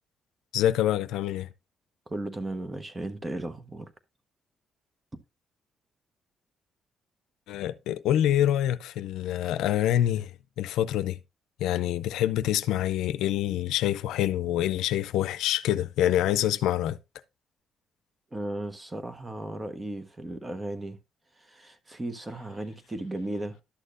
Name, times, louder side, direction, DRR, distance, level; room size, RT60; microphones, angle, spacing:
voice 1, 0.5-1.5 7.5-10.3 10.6-11.2 11.6-17.0, left 12 dB, 90° left, 0.4 m, -26 dB
voice 2, 2.1-3.9 18.3-21.0 21.4-23.6, right 1 dB, 20° right, 1.1 m, -35 dB
11.5 x 6.5 x 2.5 m
cardioid pair, 90°, 0 cm